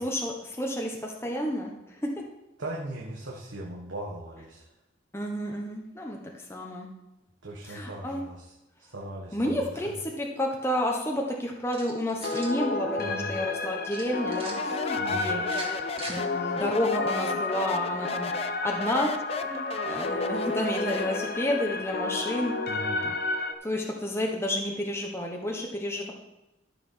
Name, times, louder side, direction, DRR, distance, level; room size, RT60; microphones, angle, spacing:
voice 1, 0.0-1.7 2.0-2.1 5.1-6.2 6.5-6.9 7.7-8.2 9.3-15.5 16.1-18.3 18.6-19.1 19.5-22.5 23.0-23.1 23.6-26.1, left 1 dB, 15° left, 0 dB, 1.2 m, -30 dB
voice 2, 2.6-4.7 7.4-8.5 8.8-9.9 13.0-13.3 15.0-15.3 22.7-23.0, right 1 dB, 80° right, -3 dB, 1.5 m, -39 dB
sound 1, 11.7-12.6 13.9-14.5 15.4-16.2, right 3 dB, 30° right, 2.6 m, -41 dB
sound 2, 12.2-23.5, left 3 dB, 55° left, 1.1 m, -31 dB
Speech, 14.5-21.2, left 4 dB, 30° left, 0.5 m, -36 dB
12.5 x 7.1 x 5.6 m, 0.95 s
head